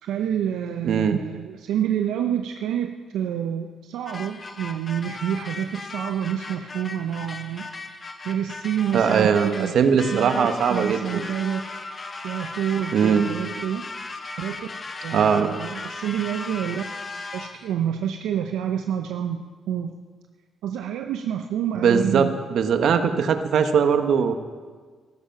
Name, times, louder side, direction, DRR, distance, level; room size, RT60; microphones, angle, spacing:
voice 1, 0.0-7.8 8.2-9.8 10.0-11.6 12.2-13.9 14.4-14.7 15.0-16.8 17.3-19.9 20.6-22.3, right 9 dB, 85° right, 5 dB, 0.7 m, -28 dB
voice 2, 0.8-1.2 8.9-9.5 9.7-11.2 12.9-13.3 15.1-15.5 21.7-24.3, right 6 dB, 65° right, 8 dB, 1.2 m, -20 dB
sound 1, 4.1-17.7, left 3 dB, 30° left, 1.2 m, -37 dB
15.0 x 13.5 x 5.9 m, 1.5 s
cardioid pair, 90°, 0 cm